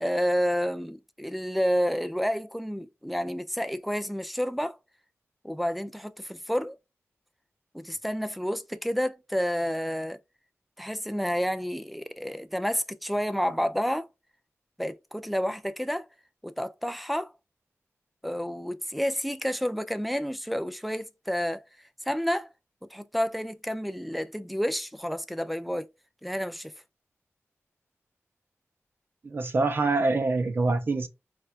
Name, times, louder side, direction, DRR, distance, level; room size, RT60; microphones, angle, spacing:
voice 1, 0.0-4.8 5.4-6.8 7.7-10.2 10.8-14.1 14.8-16.1 16.4-17.3 18.2-21.6 22.1-22.5 22.9-25.9 26.2-26.7, equal, ahead, 0.3 m, -30 dB
voice 2, 29.2-31.1, right 3 dB, 45° right, 0.6 m, -25 dB
4.3 x 2.3 x 2.4 m
wide cardioid pair, 125°, 5 cm